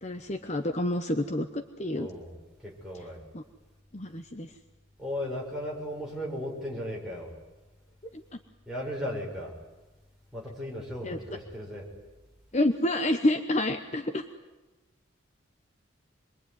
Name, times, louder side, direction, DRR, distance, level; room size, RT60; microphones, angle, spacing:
voice 1, 0.0-2.1 3.3-3.4 3.9-4.5 8.1-8.4 11.0-11.2 12.5-14.3, left 1 dB, 35° left, 6 dB, 1.0 m, -28 dB
voice 2, 1.9-2.3 2.6-3.2 5.0-7.3 8.7-9.6 10.3-11.9, equal, ahead, -4 dB, 6.9 m, -36 dB
27.0 x 22.5 x 9.7 m, 1.1 s
head